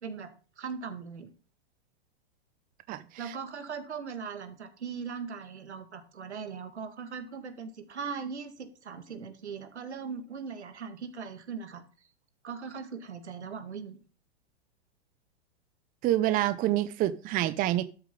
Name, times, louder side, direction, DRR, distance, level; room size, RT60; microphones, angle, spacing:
voice 1, 0.6-1.3 3.2-11.8 12.4-14.0, right 6 dB, 85° right, 2.0 m, -39 dB
voice 2, 16.0-17.8, right 14 dB, 25° right, 0.7 m, -26 dB
12.5 x 7.0 x 3.8 m
hypercardioid pair, 115°, 33 cm